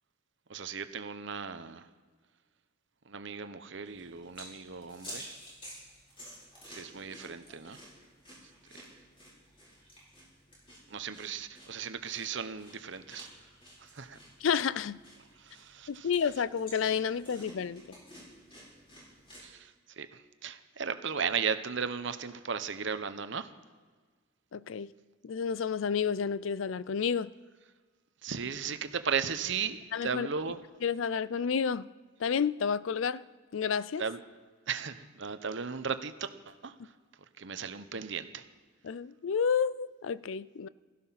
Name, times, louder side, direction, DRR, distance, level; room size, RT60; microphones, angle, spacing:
voice 1, 0.5-1.9 3.1-5.3 6.7-7.8 10.9-13.3 13.8-14.2 15.4-16.1 19.4-23.5 28.2-30.6 34.0-34.2 34.7-36.9 37.4-38.5, right 6 dB, 65° right, 0.9 m, -36 dB
sound 1, 3.9-19.5, equal, 25° left, 5.5 m, -51 dB
voice 2, 14.4-15.0 15.9-18.0 24.5-24.9 25.2-27.3 29.9-30.3 30.8-31.9 32.2-33.3 33.5-34.0 38.8-40.7, left 6 dB, 75° left, 0.4 m, -30 dB
16.5 x 13.5 x 5.8 m
head